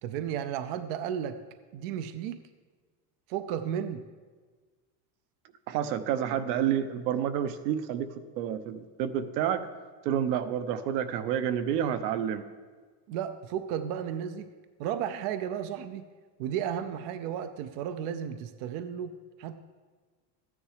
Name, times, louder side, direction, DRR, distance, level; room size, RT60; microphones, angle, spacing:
voice 1, 0.0-1.4 1.7-2.4 3.3-4.0 13.1-14.5 14.8-16.1 16.4-19.6, right 9 dB, 45° right, 11 dB, 0.5 m, -33 dB
voice 2, 5.7-9.7 10.0-12.4, right 9 dB, 75° right, 11 dB, 1.0 m, -29 dB
13.5 x 9.8 x 4.9 m, 1.4 s
cardioid pair, 175°, 50 cm